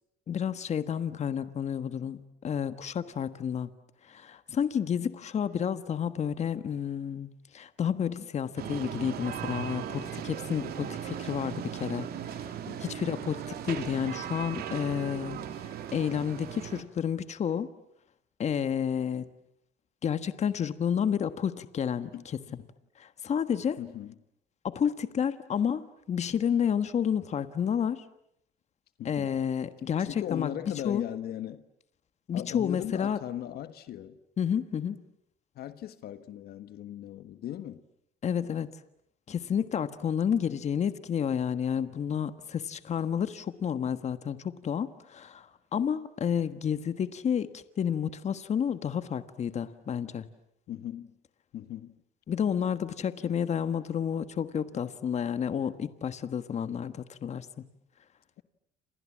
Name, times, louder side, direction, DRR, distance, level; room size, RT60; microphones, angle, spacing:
voice 1, 0.3-3.7 4.0-12.4 12.8-15.4 15.9-17.7 18.4-19.3 20.0-22.4 23.0-23.8 24.6-28.0 29.0-30.5 30.8-31.0 32.3-33.2 34.4-35.0 38.2-38.7 39.3-50.3 52.3-57.5, left 8 dB, 40° left, 1.4 m, -30 dB
sound 1, 8.6-16.8, right 9 dB, 65° right, 2.9 m, -38 dB
voice 2, 12.6-13.0 22.1-22.2 23.8-24.1 29.0-29.3 30.0-31.6 32.3-34.2 35.5-37.8 50.7-51.1 51.5-51.9, left 11 dB, 70° left, 1.4 m, -38 dB
29.0 x 27.5 x 7.4 m
cardioid pair, 110°, 17 cm